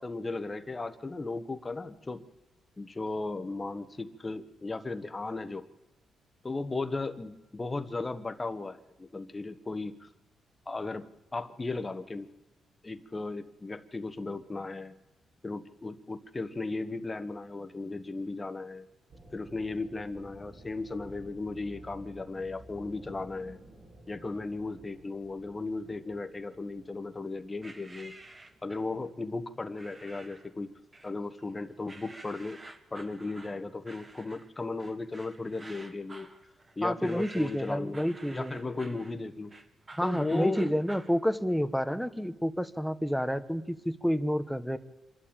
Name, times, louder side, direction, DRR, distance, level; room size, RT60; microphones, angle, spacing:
voice 1, 0.0-2.2 2.8-5.7 6.4-10.1 10.7-11.1 11.3-12.3 12.8-14.9 15.4-18.8 19.3-23.6 24.1-28.1 28.6-30.7 31.0-32.6 32.9-36.3 36.8-38.0 38.3-39.5 40.0-40.7, left 3 dB, 20° left, 10 dB, 1.3 m, -36 dB
sound 1, 19.1-31.7, right 1 dB, 55° right, 7.0 m, -54 dB
sound 2, 27.6-28.9 29.7-30.5 30.9-31.5 31.9-41.2, right 2 dB, 25° right, 1.6 m, -50 dB
voice 2, 36.8-38.5 39.9-44.8, equal, ahead, 15 dB, 1.1 m, -29 dB
26.5 x 11.5 x 8.9 m, 1.0 s
cardioid pair, 105°, 0 cm